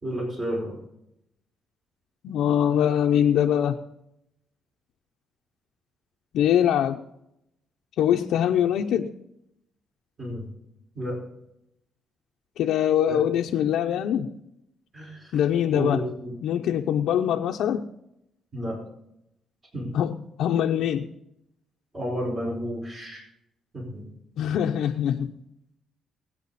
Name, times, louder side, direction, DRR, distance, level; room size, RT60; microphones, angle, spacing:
voice 1, 0.0-0.7 10.2-10.4 10.9-11.2 13.1-13.2 14.9-15.3 15.7-16.3 18.5-18.8 19.7-19.9 21.9-23.2 23.7-24.0, equal, 35° right, -3 dB, 4.8 m, -31 dB
voice 2, 2.2-3.8 6.3-7.0 8.0-9.1 12.6-14.3 15.3-16.1 16.4-17.8 19.9-21.1 24.4-25.3, left 10 dB, 80° left, 2 dB, 0.6 m, -23 dB
19.0 x 9.0 x 4.1 m, 0.83 s
cardioid pair, 90°, 0 cm